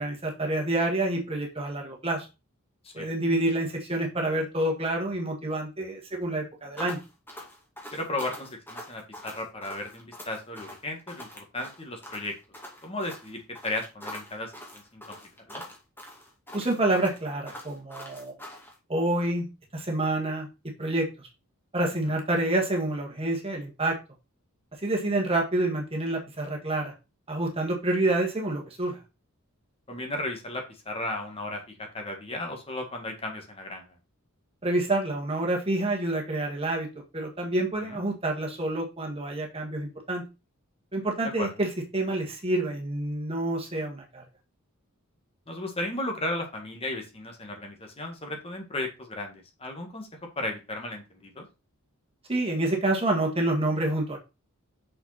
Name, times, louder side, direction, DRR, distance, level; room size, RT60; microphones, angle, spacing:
voice 1, 0.0-2.3 2.9-7.0 16.5-18.4 18.9-19.5 19.7-20.5 20.8-21.1 21.7-24.0 24.8-26.9 27.3-29.0 34.6-36.9 37.1-40.2 40.9-44.2 52.3-54.2, right 2 dB, 25° right, 0 dB, 1.8 m, -28 dB
sound 1, 6.8-18.7, left 1 dB, 10° left, 2.4 m, -43 dB
voice 2, 7.9-12.3 12.8-15.2 15.5-15.6 29.9-33.8 37.8-38.0 41.4-41.5 45.5-50.1 50.4-51.5, left 2 dB, 25° left, 3 dB, 1.8 m, -35 dB
6.5 x 5.9 x 4.2 m, 0.27 s
head